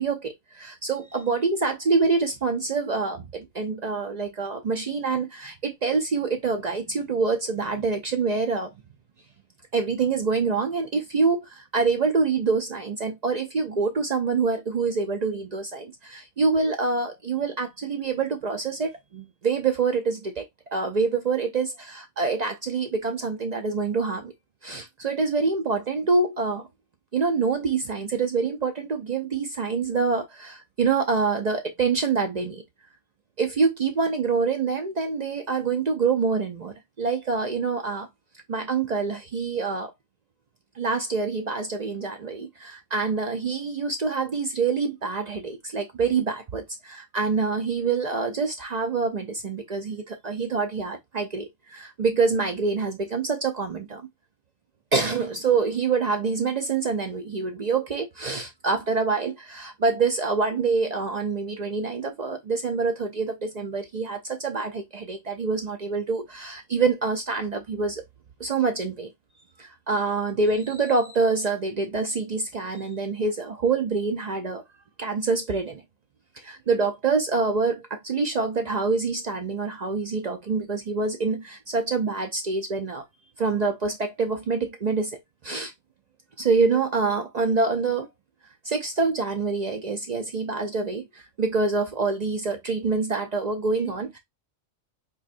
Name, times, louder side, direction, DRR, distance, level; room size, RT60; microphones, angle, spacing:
voice 1, 0.0-8.7 9.7-24.3 24.6-26.7 27.1-32.6 33.4-38.1 38.5-39.9 40.8-54.1 54.9-68.0 68.4-69.1 69.6-74.6 75.0-75.8 76.4-83.0 83.4-85.1 85.4-85.7 86.4-88.1 88.6-94.2, right 4 dB, 55° right, 0.5 m, -26 dB
4.2 x 3.1 x 2.5 m
omnidirectional pair, 1.2 m